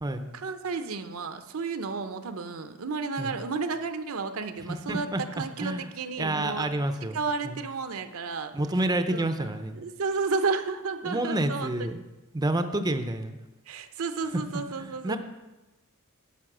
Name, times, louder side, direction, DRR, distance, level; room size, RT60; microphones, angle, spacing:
voice 1, 0.3-6.7 7.0-8.6 9.1-9.5 9.8-11.7 13.7-15.2, right 4 dB, 75° right, 9 dB, 0.7 m, -32 dB
voice 2, 4.7-5.9 6.2-7.2 7.4-7.6 8.5-9.8 11.0-12.0 12.3-13.4 14.5-15.2, right 1 dB, 20° right, 8 dB, 0.5 m, -29 dB
11.0 x 5.5 x 6.0 m, 1.1 s
head